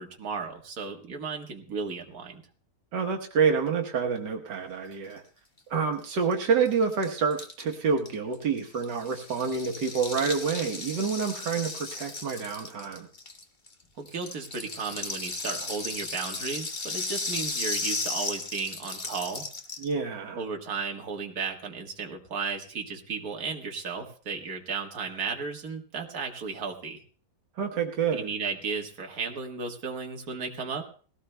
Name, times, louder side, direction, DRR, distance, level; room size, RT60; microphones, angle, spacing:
voice 1, 0.0-2.4 14.0-19.5 20.3-27.0 28.1-30.8, right 5 dB, 60° right, 2 dB, 2.0 m, -34 dB
voice 2, 2.9-5.2 5.7-13.1 19.8-20.4 27.6-28.3, right 5 dB, 85° right, 2 dB, 1.8 m, -28 dB
Rattle (instrument), 6.0-6.1 6.3-6.4 6.6-13.7 14.1-19.9, left 3 dB, 30° left, 1.3 m, -35 dB
20.5 x 17.0 x 2.2 m, 0.42 s
omnidirectional pair, 1.8 m